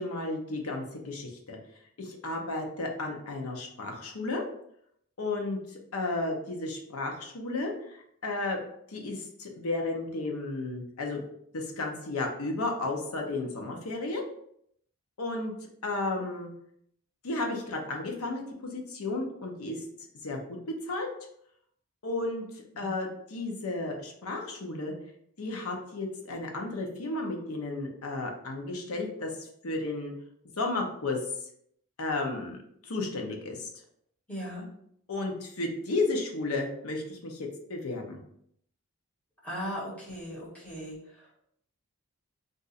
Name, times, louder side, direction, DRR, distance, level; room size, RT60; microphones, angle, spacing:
voice 1, 0.0-1.6 2.0-4.4 5.2-8.6 8.9-11.2 11.5-14.2 15.2-15.5 15.8-16.5 17.2-19.8 20.2-20.6 20.8-21.1 22.0-24.9 25.4-30.1 30.6-31.2 32.0-32.6 32.8-33.7 35.1-38.2, left 2 dB, 80° left, 2 dB, 0.7 m, -33 dB
voice 2, 34.3-34.7 39.4-41.4, equal, 5° left, -8 dB, 1.3 m, -38 dB
2.5 x 2.4 x 4.0 m, 0.70 s
head